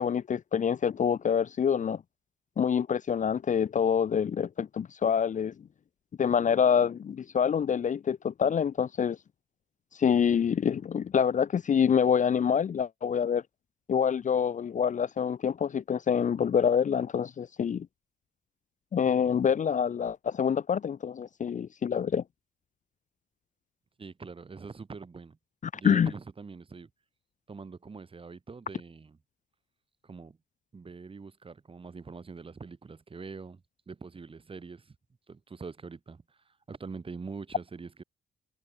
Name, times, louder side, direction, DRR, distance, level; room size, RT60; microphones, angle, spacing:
voice 1, 0.0-2.0 2.6-5.5 6.2-9.2 10.0-13.4 13.9-17.9 18.9-22.2 25.8-26.1, left 7 dB, 40° left, 0.6 m, -26 dB
voice 2, 24.0-25.4 25.7-26.9 27.5-29.2 30.0-30.4 30.7-34.9 35.3-38.0, right 4 dB, 25° right, 1.4 m, -44 dB
cardioid pair, 90°, 20 cm